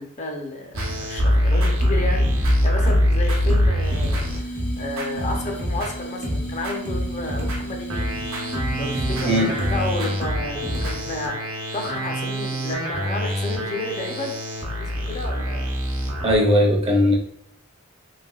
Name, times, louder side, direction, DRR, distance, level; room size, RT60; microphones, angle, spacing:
voice 1, 0.0-8.1 8.8-14.4 14.7-15.7, left 2 dB, 35° left, 2 dB, 0.5 m, -32 dB
sound 1, 0.7-6.0 6.2-16.4, equal, 65° right, 0.8 m, -24 dB
sound 2, 3.8-10.3, right 1 dB, 70° left, 0.8 m, -35 dB
voice 2, 16.2-17.2, left 1 dB, 25° right, 0 dB, 0.6 m, -18 dB
3.3 x 2.6 x 2.3 m, 0.71 s
head